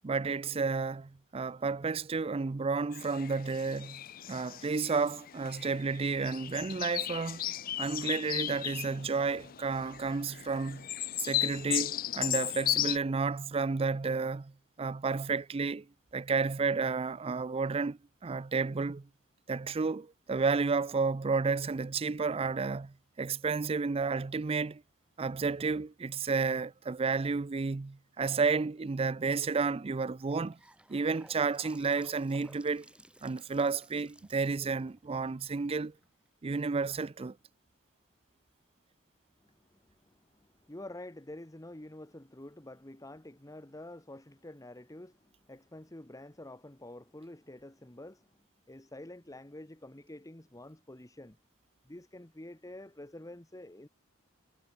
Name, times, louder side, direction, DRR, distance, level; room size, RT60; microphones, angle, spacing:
voice 1, 0.0-4.0 4.3-7.5 7.8-10.9 11.2-14.5 14.8-15.9 16.1-19.1 19.5-24.8 25.2-30.6 30.9-32.9 33.2-35.9 36.4-37.4, right 4 dB, 30° right, 0.4 m, -31 dB
sound 1, 2.9-13.0, left 13 dB, 45° left, 0.5 m, -36 dB
Gurgling / Sink (filling or washing) / Bathtub (filling or washing), 30.2-36.3, right 1 dB, 5° right, 6.5 m, -58 dB
voice 2, 39.4-48.3 48.7-51.4 51.8-53.9, left 1 dB, 15° left, 1.3 m, -48 dB
head